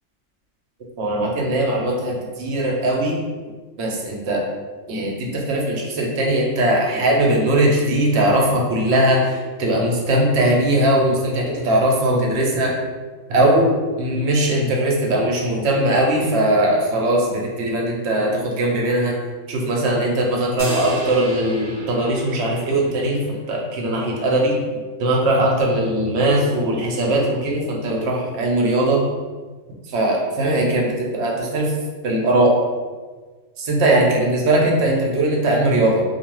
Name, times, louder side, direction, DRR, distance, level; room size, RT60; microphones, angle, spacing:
voice 1, 1.0-3.2 3.8-4.4 4.9-12.7 13.3-19.2 19.5-24.6 25.0-29.0 29.9-31.7 32.0-32.6 33.6-36.0, right 1 dB, 65° right, -1 dB, 0.8 m, -20 dB
sound 1, 20.6-23.1, right 1 dB, 60° left, 1.2 m, -32 dB
2.5 x 2.2 x 2.9 m, 1.4 s
omnidirectional pair, 1.3 m